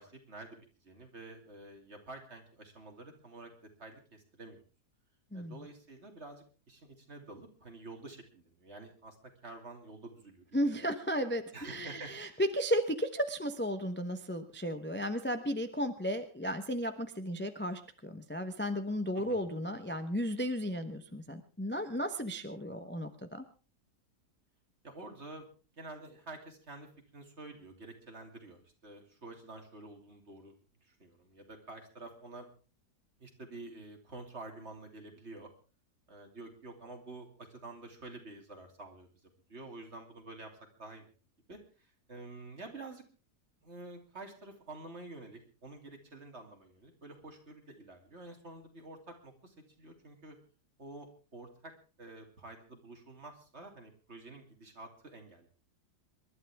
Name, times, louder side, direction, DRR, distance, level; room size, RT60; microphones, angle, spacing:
voice 1, 0.0-3.5 3.8-4.6 5.3-9.2 9.4-10.4 10.8-10.9 11.5-12.4 19.1-19.4 24.8-25.5 25.8-30.5 30.8-32.5 33.2-35.5 36.1-39.1 39.5-40.5 40.8-41.1 41.5-43.0 43.6-50.4 50.8-51.7 52.0-55.5, right 2 dB, 40° right, 3 dB, 3.1 m, -49 dB
voice 2, 10.5-23.4, equal, 10° left, 7 dB, 0.8 m, -34 dB
27.0 x 12.0 x 3.6 m, 0.37 s
omnidirectional pair, 1.7 m